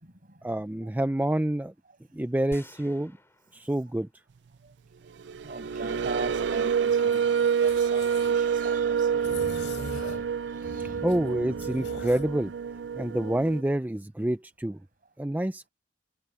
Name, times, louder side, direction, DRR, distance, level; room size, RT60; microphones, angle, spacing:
voice 1, 0.4-1.7 2.1-3.2 3.5-4.1 10.6-12.5 13.0-14.8 15.2-15.7, right 1 dB, 10° right, 0.4 m, -28 dB
sound 1, 2.5-4.4 4.8-4.9, left 1 dB, 15° left, 5.9 m, -51 dB
sound 2, 5.2-13.6, right 7 dB, 70° right, 0.4 m, -27 dB
voice 2, 5.4-9.4 10.7-11.3, right 3 dB, 50° right, 7.4 m, -40 dB
sound 3, 6.8-8.3 9.2-10.3 10.6-12.3, left 2 dB, 80° left, 4.7 m, -42 dB
head